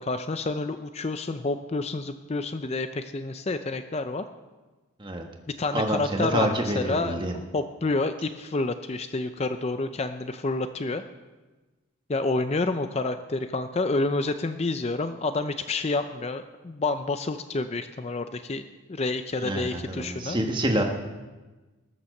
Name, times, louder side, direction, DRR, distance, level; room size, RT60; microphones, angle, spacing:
voice 1, 0.0-4.2 5.6-11.0 12.1-18.6 18.9-20.4, left 3 dB, 30° left, 9 dB, 0.4 m, -29 dB
voice 2, 5.7-7.4 19.4-20.8, right 1 dB, 20° right, 3 dB, 1.3 m, -27 dB
20.5 x 7.1 x 6.5 m, 1.2 s
head